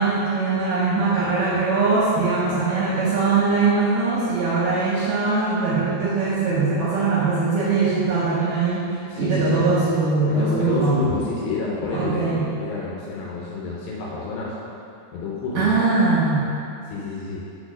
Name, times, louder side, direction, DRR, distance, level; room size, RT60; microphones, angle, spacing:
voice 1, 0.0-11.0 11.9-12.5 15.5-16.5, right 3 dB, 75° right, -7 dB, 2.0 m, -21 dB
voice 2, 9.1-9.6 10.3-12.3 12.6-14.5 15.1-15.8 16.9-17.4, left 3 dB, 75° left, -4 dB, 2.3 m, -29 dB
5.7 x 4.4 x 6.2 m, 2.7 s
omnidirectional pair, 4.8 m